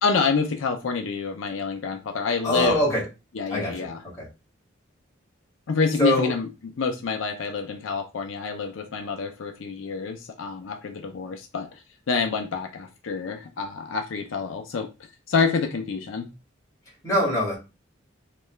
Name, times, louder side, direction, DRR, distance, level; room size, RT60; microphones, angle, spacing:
voice 1, 0.0-2.9 3.3-4.0 5.7-6.5 6.8-11.8 12.1-14.9 15.3-16.3, left 5 dB, 80° left, 0.5 m, -27 dB
voice 2, 2.4-3.0 3.5-4.3 6.0-6.3 17.0-17.6, equal, 15° left, 1.6 m, -23 dB
3.2 x 2.9 x 2.2 m
head